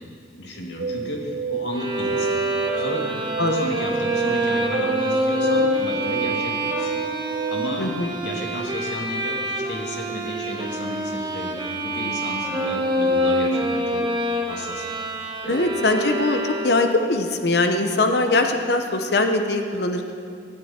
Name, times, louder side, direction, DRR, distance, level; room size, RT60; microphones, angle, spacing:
voice 1, 0.4-2.4 2.8-14.0 14.4-14.9 15.4-15.7, left 1 dB, 80° left, 0 dB, 2.5 m, -33 dB
sound 1, 0.8-7.9, right 7 dB, 45° right, 0.6 m, -30 dB
Bowed string instrument, 1.7-17.0, equal, 25° right, 1.5 m, -26 dB
voice 2, 7.8-8.1 15.5-20.1, left 2 dB, 65° left, 6 dB, 0.9 m, -22 dB
19.0 x 13.0 x 4.4 m, 2.4 s
head